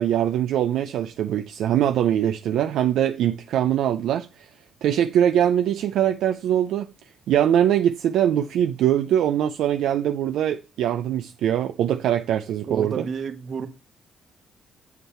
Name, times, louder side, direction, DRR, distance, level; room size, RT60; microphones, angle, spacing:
voice 1, 0.0-4.5 4.8-6.9 7.3-13.0, right 10 dB, 80° right, 0.5 m, -22 dB
voice 2, 12.7-13.7, right 6 dB, 55° right, 1.3 m, -30 dB
8.2 x 7.5 x 4.3 m
cardioid pair, 90°, 0 cm